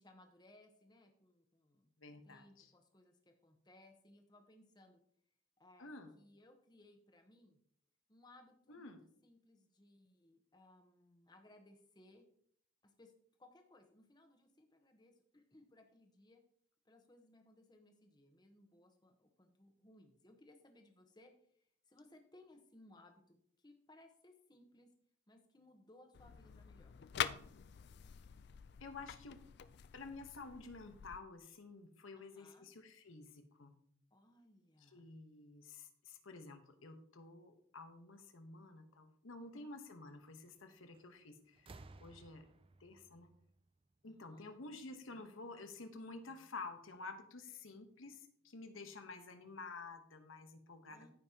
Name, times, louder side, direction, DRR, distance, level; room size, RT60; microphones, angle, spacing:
voice 1, 0.0-1.9 2.2-5.0 5.6-5.9 6.2-7.6 8.1-9.0 9.2-12.3 12.8-13.1 13.4-16.4 16.8-21.3 21.6-24.9 25.3-27.1 32.1-32.7 34.1-35.1 39.4-39.7 44.0-44.6 50.9-51.1, left 1 dB, 20° left, 5 dB, 1.0 m, -64 dB
voice 2, 2.0-2.7 5.8-6.1 8.7-9.0 28.8-29.4 29.9-33.7 34.8-41.7 42.0-42.4 42.8-43.3 44.0-51.1, left 3 dB, 80° left, 7 dB, 1.1 m, -51 dB
sound 1, 26.1-31.2, left 9 dB, 55° left, 0.3 m, -45 dB
sound 2, 40.9-41.2 41.5-44.3 45.4-45.5, right 3 dB, 25° right, 0.4 m, -59 dB
14.0 x 5.4 x 2.8 m, 0.65 s
head